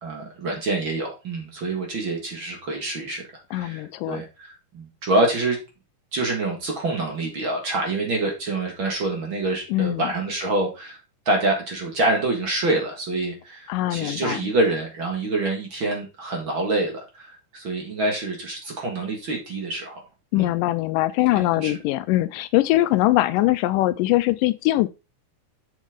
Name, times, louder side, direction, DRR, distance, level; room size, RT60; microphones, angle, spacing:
voice 1, 0.0-3.2 3.5-5.6 6.1-11.0 11.3-20.0 20.3-20.5 21.3-21.8, right 2 dB, 45° right, 2.1 m, -26 dB
voice 2, 3.5-4.2 9.7-10.1 13.7-14.4 20.3-24.9, left 16 dB, 85° left, 2.2 m, -22 dB
7.3 x 6.4 x 3.7 m
omnidirectional pair, 3.8 m